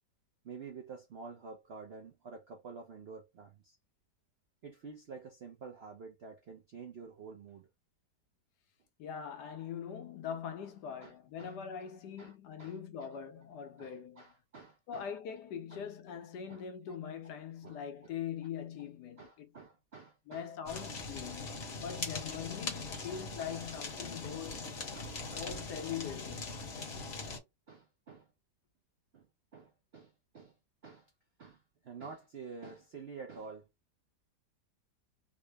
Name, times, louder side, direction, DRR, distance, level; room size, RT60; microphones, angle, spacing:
voice 1, 0.4-3.8 4.6-7.7 11.0-11.1 11.4-11.5 12.2-12.3 12.6-13.1 13.8-15.1 15.7-15.8 16.5-16.6 16.9-17.0 17.6-17.8 19.2-20.8 23.5-23.6 24.2-24.4 24.9-25.9 27.3-28.3 29.1-29.3 29.5-30.6 30.8-31.1 31.4-31.6 31.8-33.7, right 5 dB, 60° right, 0.6 m, -49 dB
voice 2, 9.0-14.3 14.9-19.5 20.3-24.7 25.3-26.6, left 8 dB, 75° left, 1.3 m, -42 dB
Fire, 20.7-27.4, left 3 dB, 45° left, 1.0 m, -41 dB
3.6 x 2.1 x 3.3 m
omnidirectional pair, 1.8 m